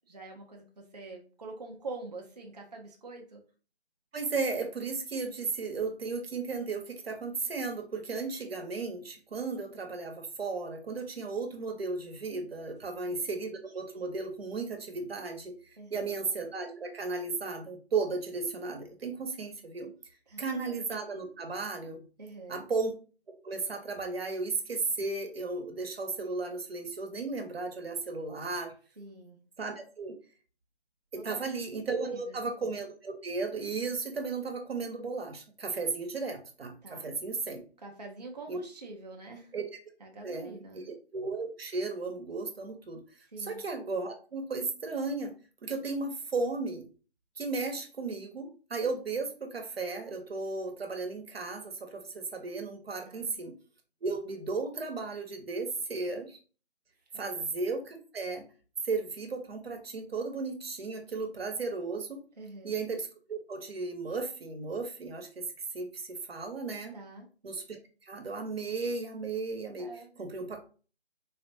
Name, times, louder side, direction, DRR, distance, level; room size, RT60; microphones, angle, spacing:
voice 1, 0.1-3.4 12.8-13.3 15.8-16.2 20.3-20.6 22.2-22.7 29.0-29.4 31.1-31.5 32.1-32.5 36.8-37.1 37.8-39.5 40.0-40.8 43.3-43.6 53.1-53.4 57.1-57.4 62.4-62.8 66.9-67.3 69.8-70.2, right 3 dB, 40° right, 1 dB, 0.4 m, -45 dB
voice 2, 4.1-19.9 20.4-22.0 22.5-22.9 23.4-28.7 29.6-30.1 31.1-37.6 38.5-38.6 39.5-39.7 40.2-43.0 43.4-45.3 45.6-46.8 47.4-53.5 54.0-56.4 57.2-58.4 58.8-62.2 62.6-65.4 65.7-66.9 67.4-70.6, right 4 dB, 65° right, 4 dB, 0.8 m, -35 dB
3.9 x 2.2 x 2.6 m, 0.38 s
figure-of-eight pair, 175°, 33 cm